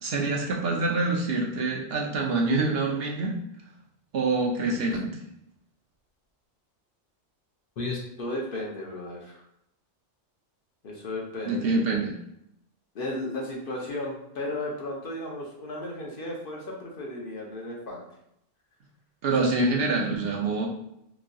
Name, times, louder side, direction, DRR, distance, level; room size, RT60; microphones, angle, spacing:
voice 1, 0.0-3.4 4.1-5.2 11.5-12.2 19.2-20.7, right 3 dB, 65° right, 0 dB, 0.7 m, -26 dB
voice 2, 7.8-9.4 10.8-11.6 12.9-18.1, left 2 dB, 55° left, -1 dB, 0.8 m, -34 dB
3.0 x 2.6 x 2.6 m, 0.78 s
omnidirectional pair, 1.2 m